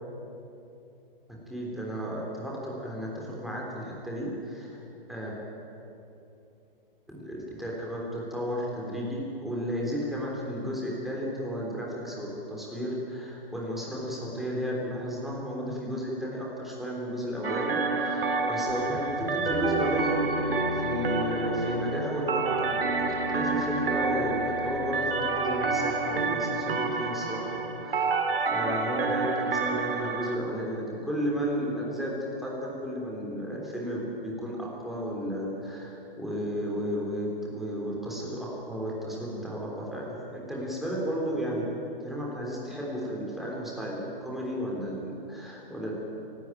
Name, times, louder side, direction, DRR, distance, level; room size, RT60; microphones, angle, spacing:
voice 1, 1.5-4.8 5.1-5.4 7.1-27.5 27.8-28.2 28.5-41.7 42.0-45.9, equal, ahead, -4 dB, 3.6 m, -33 dB
sound 1, 17.4-30.4, right 3 dB, 75° right, 2.4 m, -28 dB
sound 2, 18.7-26.1, left 1 dB, 35° right, 1.1 m, -39 dB
26.0 x 12.5 x 9.1 m, 2.8 s
hypercardioid pair, 155°, 29 cm